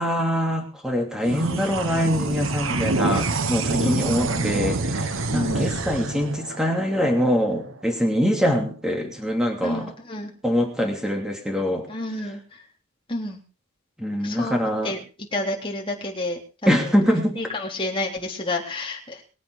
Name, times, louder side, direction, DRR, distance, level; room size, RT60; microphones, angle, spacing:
voice 1, 0.0-9.9 10.4-11.9 14.0-14.9 16.7-17.4, equal, 5° right, 2 dB, 2.9 m, -24 dB
sound 1, 1.2-7.9, right 3 dB, 65° right, 1.2 m, -27 dB
voice 2, 3.7-4.5 5.3-5.7 9.6-10.3 11.9-12.6 13.1-13.4 14.2-14.6 14.8-15.0 15.3-19.2, left 2 dB, 25° left, 0 dB, 3.5 m, -30 dB
22.5 x 8.5 x 4.9 m, 0.35 s
head